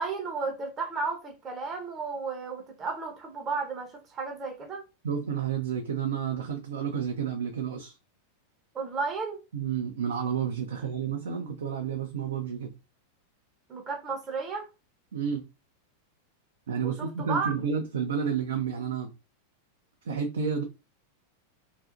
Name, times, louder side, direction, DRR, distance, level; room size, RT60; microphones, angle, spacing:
voice 1, 0.0-4.8 8.7-9.4 13.7-14.7 16.8-17.5, right 4 dB, 25° right, 0.6 m, -33 dB
voice 2, 5.0-8.0 9.5-12.7 15.1-15.5 16.7-19.1 20.0-20.6, right 7 dB, 65° right, 0.4 m, -30 dB
2.7 x 2.5 x 2.4 m
figure-of-eight pair, 90°, 0 cm